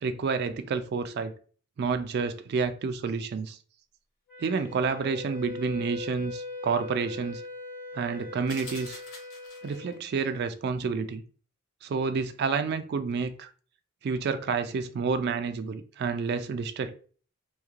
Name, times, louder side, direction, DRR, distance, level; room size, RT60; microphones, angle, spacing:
voice 1, 0.0-1.3 1.8-3.6 4.4-7.4 7.9-9.0 9.6-11.2 11.8-13.5 14.0-17.0, right 5 dB, 55° right, 0.3 m, -29 dB
Wind instrument woodwind instrument, 4.3-10.0, left 3 dB, 45° left, 1.1 m, -40 dB
sound 1, 8.5-9.9, left 3 dB, 85° left, 1.0 m, -45 dB
3.0 x 2.8 x 2.3 m
head